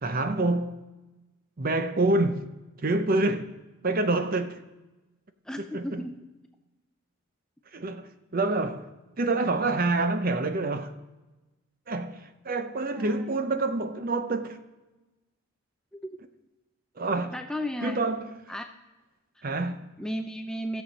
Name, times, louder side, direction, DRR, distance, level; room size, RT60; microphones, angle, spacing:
voice 1, 0.0-0.7 1.6-2.4 2.8-3.5 3.8-4.6 5.7-6.1 7.7-8.9 9.2-10.9 11.9-14.6 17.0-17.4 17.8-18.3 19.4-19.9, right 2 dB, 40° right, 0.6 m, -27 dB
voice 2, 5.5-6.2 12.9-13.3 15.9-16.2 17.3-18.0 18.5-18.7 19.4-19.5 20.0-20.8, equal, 5° left, 0.4 m, -34 dB
14.0 x 7.3 x 5.2 m
head